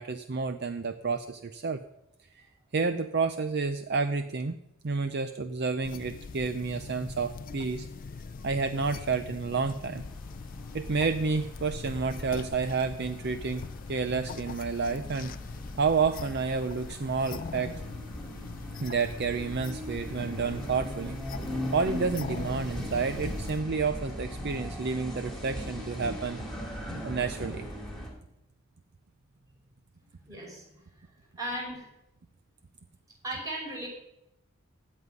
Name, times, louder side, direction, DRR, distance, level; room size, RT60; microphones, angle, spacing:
voice 1, 0.0-1.8 2.3-2.4 2.7-4.6 4.8-7.9 8.4-10.0 10.7-13.6 13.9-15.3 15.8-17.7 18.7-21.2 21.7-26.4 27.0-27.7, right 4 dB, 50° right, 9 dB, 0.5 m, -30 dB
sound 1, 5.8-23.6, left 4 dB, 40° left, 0.4 m, -42 dB
sound 2, 10.0-28.1, equal, ahead, 3.2 m, -40 dB
voice 2, 30.2-31.9 33.2-33.9, right 1 dB, 15° right, -2 dB, 5.8 m, -38 dB
16.0 x 5.5 x 9.6 m, 0.87 s
head